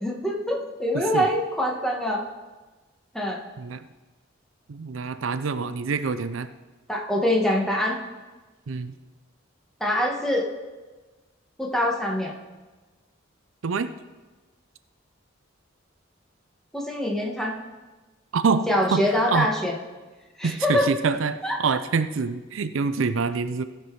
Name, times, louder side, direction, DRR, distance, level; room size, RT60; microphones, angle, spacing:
voice 1, 0.0-2.2 3.1-3.4 6.9-8.0 9.8-10.5 11.6-12.4 16.7-17.6 18.7-19.8 20.4-20.9 21.4-21.6, left 1 dB, ahead, -1 dB, 1.5 m, -24 dB
voice 2, 0.9-1.3 3.6-3.8 4.7-6.5 8.7-8.9 13.6-13.9 18.3-19.5 20.4-23.6, right 5 dB, 80° right, 11 dB, 0.5 m, -26 dB
16.0 x 6.0 x 4.7 m, 1.2 s
head